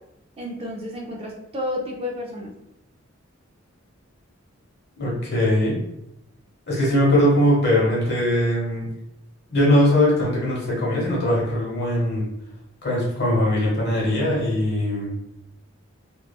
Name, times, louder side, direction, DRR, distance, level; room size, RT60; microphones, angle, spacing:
voice 1, 0.4-2.5, left 1 dB, 30° right, -1 dB, 0.4 m, -31 dB
voice 2, 5.0-5.8 6.7-8.9 9.5-12.2 12.8-15.1, left 1 dB, 55° left, -4 dB, 1.0 m, -20 dB
3.0 x 2.3 x 2.2 m, 0.83 s
head